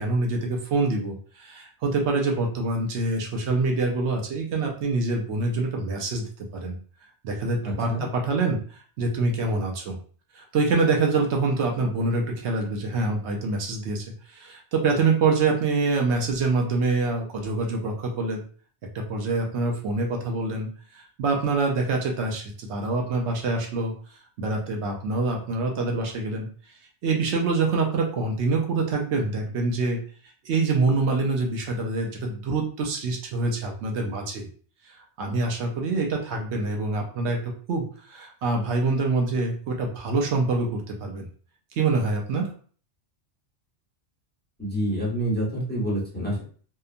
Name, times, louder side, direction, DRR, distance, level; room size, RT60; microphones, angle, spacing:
voice 1, 0.0-6.7 7.2-10.0 10.3-18.4 18.9-23.9 24.4-26.5 27.0-30.0 30.4-34.5 34.9-41.3 41.8-42.5, right 3 dB, 75° right, 1 dB, 0.9 m, -25 dB
voice 2, 7.6-8.0 44.6-46.4, right 1 dB, 10° left, -6 dB, 0.9 m, -27 dB
2.8 x 2.2 x 2.4 m, 0.43 s
omnidirectional pair, 1.2 m